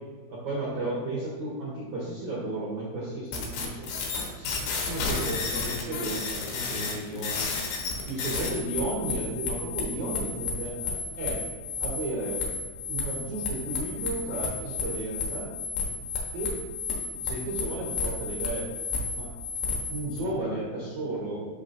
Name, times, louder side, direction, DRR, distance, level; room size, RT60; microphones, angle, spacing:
voice 1, 0.3-3.9 4.4-7.5 8.1-11.4 11.8-12.4 12.9-15.5 16.3-16.6 17.2-18.7 19.2-19.3 19.9-21.5, right 2 dB, 75° right, -6 dB, 1.7 m, -33 dB
sound 1, 3.3-20.2, left 4 dB, 80° left, 3.4 m, -32 dB
7.0 x 5.9 x 2.6 m, 1.5 s
omnidirectional pair, 5.3 m